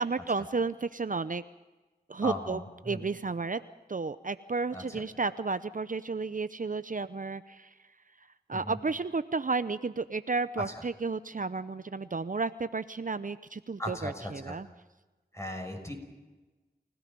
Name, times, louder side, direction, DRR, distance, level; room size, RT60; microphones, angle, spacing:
voice 1, 0.0-1.4 2.1-3.6 3.9-7.7 8.5-14.7, right 4 dB, 55° right, 13 dB, 0.7 m, -32 dB
voice 2, 2.2-3.0 4.7-4.8 8.5-8.8 13.8-14.5 15.3-15.9, left 1 dB, 15° left, 3 dB, 6.2 m, -37 dB
30.0 x 16.5 x 5.4 m, 1.2 s
wide cardioid pair, 45°, 17 cm